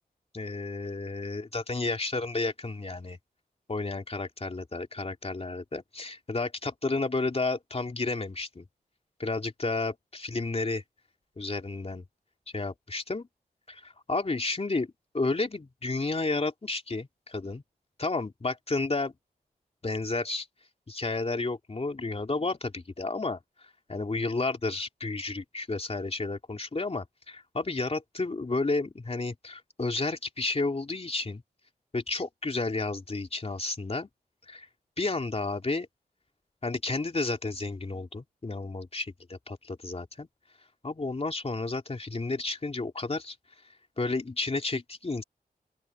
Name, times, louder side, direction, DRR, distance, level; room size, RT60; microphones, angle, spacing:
voice 1, 0.3-3.2 3.7-8.7 9.2-10.8 11.4-12.1 12.5-13.3 13.7-14.9 15.1-17.6 18.0-19.1 19.8-20.5 20.9-23.4 23.9-31.4 31.9-34.1 34.5-34.7 35.0-35.9 36.6-40.3 40.8-43.4 44.0-45.2, left 3 dB, 40° left, 3.0 m, -31 dB
open air
cardioid pair, 55°, 16 cm